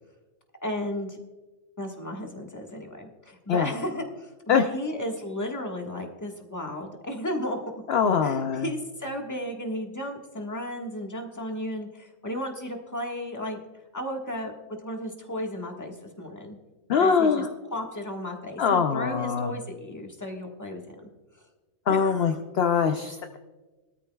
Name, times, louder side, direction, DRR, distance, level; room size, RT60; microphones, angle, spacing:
voice 1, 0.6-1.2 1.8-7.6 8.2-13.6 13.9-16.6 17.0-17.5 17.7-21.1 21.9-22.4, left 1 dB, 10° left, 1 dB, 1.4 m, -34 dB
voice 2, 7.9-8.7 16.9-17.5 18.6-19.5 21.9-23.4, left 6 dB, 60° left, 7 dB, 0.7 m, -23 dB
21.0 x 13.0 x 2.3 m, 1.2 s
omnidirectional pair, 1.6 m